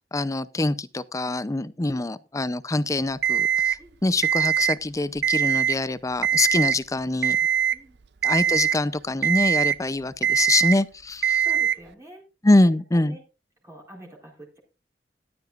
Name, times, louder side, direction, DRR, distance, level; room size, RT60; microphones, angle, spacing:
voice 1, 0.1-7.4 8.2-11.4 12.4-13.2, left 2 dB, 20° left, 0.5 m, -24 dB
voice 2, 1.8-2.1 3.8-4.0 7.7-8.0 11.4-12.5 12.9-13.2 13.6-14.6, right 1 dB, 15° right, 4.3 m, -46 dB
Alarm, 3.2-3.8 4.2-4.8 5.2-5.8 6.2-6.8 7.2-7.8 8.2-8.8 9.2-9.8 10.2-10.8 11.2-11.8, right 9 dB, 65° right, 0.5 m, -22 dB
14.5 x 12.0 x 2.5 m
head